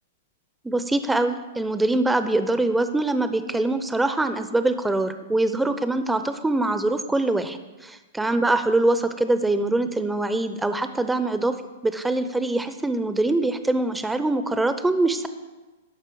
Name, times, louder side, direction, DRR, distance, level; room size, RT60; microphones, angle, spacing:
voice 1, 0.6-11.6 11.8-15.3, right 2 dB, 5° right, 10 dB, 0.7 m, -23 dB
12.5 x 5.5 x 6.8 m, 1.2 s
hypercardioid pair, 125°, 0 cm